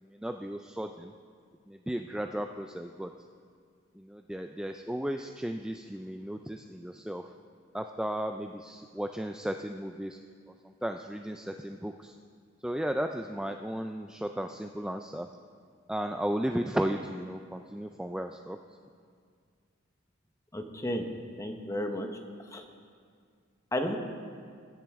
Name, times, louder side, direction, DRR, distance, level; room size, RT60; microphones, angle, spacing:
voice 1, 0.0-1.1 1.7-3.1 4.0-7.3 7.7-10.2 10.6-12.1 12.6-15.3 15.9-18.6, equal, 5° right, 5 dB, 0.3 m, -35 dB
voice 2, 20.5-21.1 21.4-22.1 22.5-22.6 23.7-24.0, left 1 dB, 15° left, 4 dB, 0.9 m, -32 dB
20.0 x 10.5 x 3.6 m, 2.1 s
head